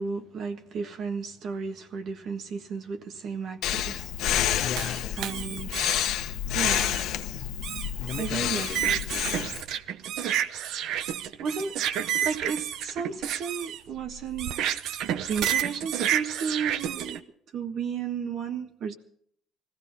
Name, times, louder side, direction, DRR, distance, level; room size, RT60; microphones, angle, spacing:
voice 1, 0.0-4.1 5.2-5.8 6.5-6.9 8.2-8.9 11.4-11.8 12.2-14.5 15.2-17.2 17.5-18.9, right 6 dB, 50° right, 6 dB, 1.5 m, -33 dB
Breathing, 3.6-9.6, left 11 dB, 65° left, 1.1 m, -29 dB
voice 2, 4.6-5.7 8.0-9.6, left 8 dB, 45° left, 6 dB, 0.7 m, -39 dB
sound 1, 4.8-6.1 6.7-7.0 7.6-17.2, right 10 dB, 65° right, 0.8 m, -30 dB
21.0 x 15.5 x 4.1 m, 0.65 s
cardioid pair, 140°, 0 cm